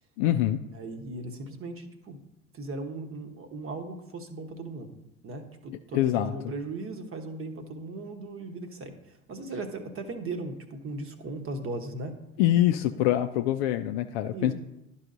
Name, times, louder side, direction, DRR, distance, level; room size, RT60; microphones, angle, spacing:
voice 1, 0.2-0.6 5.9-6.3 12.4-14.5, left 13 dB, 50° left, 7 dB, 0.5 m, -24 dB
voice 2, 0.7-2.2 2.5-5.0 5.2-12.2 14.3-14.5, right 2 dB, 30° right, 7 dB, 1.1 m, -37 dB
12.0 x 5.6 x 2.6 m, 0.89 s
figure-of-eight pair, 75°, 44 cm